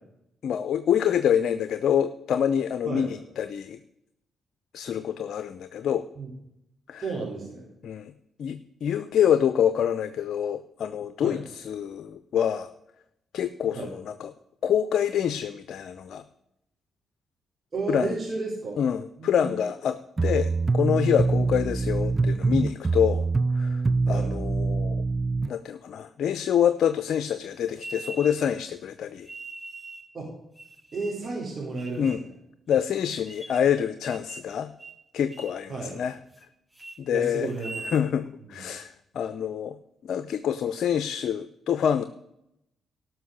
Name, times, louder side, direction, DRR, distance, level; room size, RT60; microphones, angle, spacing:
voice 1, 0.4-3.8 4.7-6.0 6.9-7.0 7.8-8.1 8.4-12.7 13.3-14.3 14.6-16.2 17.9-18.1 18.8-23.3 23.5-23.8 24.1-25.0 25.5-29.3 32.0-32.2 32.7-34.7 35.1-36.2 37.0-37.5 37.9-39.7 40.0-42.0, left 9 dB, 70° left, 12 dB, 0.6 m, -26 dB
voice 2, 7.0-7.6 11.2-11.4 13.7-13.9 17.7-18.8 19.2-19.6 24.1-24.3 30.1-30.3 30.9-32.1 35.7-36.0 37.1-38.0 38.4-38.6, right 3 dB, 45° right, -5 dB, 4.1 m, -33 dB
sound 1, 20.2-25.5, right 3 dB, 30° right, 0.3 m, -24 dB
sound 2, 27.8-28.6 29.2-30.1 30.5-31.3 31.8-32.3 32.7-32.8 33.3-33.7 34.0-34.5 34.8-35.0 35.3-35.6 36.0-36.4 36.7-37.0 37.5-38.1, right 2 dB, 15° right, 1.7 m, -42 dB
12.5 x 6.1 x 6.6 m, 0.81 s
supercardioid pair, 60°, 0 cm